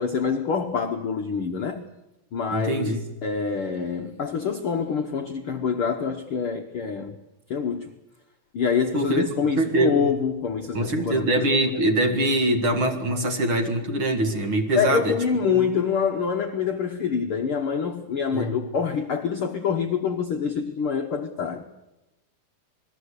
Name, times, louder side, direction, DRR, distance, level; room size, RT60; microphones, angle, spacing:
voice 1, 0.0-1.9 2.3-2.9 3.2-7.2 7.5-7.9 8.5-11.4 14.7-21.6, left 6 dB, 90° left, 4 dB, 1.1 m, -26 dB
voice 2, 2.5-3.0 8.9-9.2 9.6-10.1 10.7-15.1 15.4-15.6 18.3-18.6, right 1 dB, 45° right, 6 dB, 2.1 m, -23 dB
28.0 x 20.5 x 8.2 m, 0.98 s
omnidirectional pair, 4.2 m